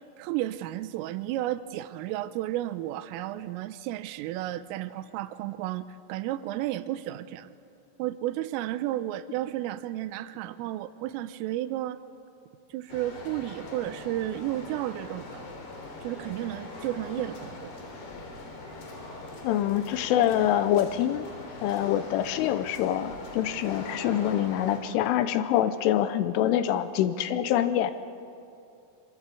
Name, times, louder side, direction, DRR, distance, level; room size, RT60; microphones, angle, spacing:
voice 1, 0.2-7.5 8.0-12.0 12.7-15.6 16.0-17.7, right 14 dB, 85° right, 13 dB, 3.4 m, -33 dB
sound 1, 12.9-24.8, left 2 dB, 55° left, 5.3 m, -42 dB
voice 2, 19.4-21.3 21.6-27.9, left 11 dB, 80° left, 12 dB, 3.3 m, -25 dB
26.0 x 23.0 x 8.4 m, 2.6 s
omnidirectional pair, 5.8 m